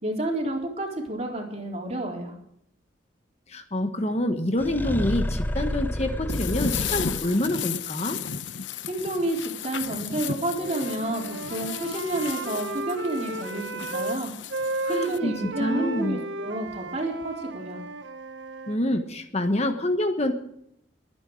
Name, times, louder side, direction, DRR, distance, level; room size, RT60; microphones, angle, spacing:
voice 1, 0.0-2.4 8.8-14.3 14.9-17.8, right 1 dB, 35° right, 0 dB, 4.1 m, -30 dB
voice 2, 3.5-8.2 14.8-15.3 15.6-16.2 18.7-20.3, left 1 dB, 35° left, 7 dB, 1.4 m, -27 dB
sound 1, 4.6-7.6, left 1 dB, 10° left, 0.6 m, -30 dB
sound 2, 6.3-15.2, left 7 dB, 85° left, 0.8 m, -34 dB
Wind instrument woodwind instrument, 10.6-14.2 14.5-18.8, right 2 dB, 80° right, 1.3 m, -34 dB
23.0 x 9.7 x 5.0 m, 0.73 s
head